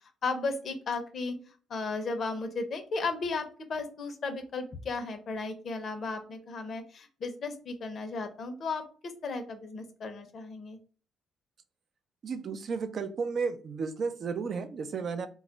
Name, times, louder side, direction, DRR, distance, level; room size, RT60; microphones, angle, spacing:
voice 1, 0.2-1.4 1.7-10.8, left 3 dB, 55° left, 7 dB, 0.6 m, -35 dB
voice 2, 12.2-15.3, right 5 dB, 55° right, 10 dB, 0.4 m, -33 dB
2.2 x 2.0 x 3.8 m, 0.38 s
cardioid pair, 90°, 0 cm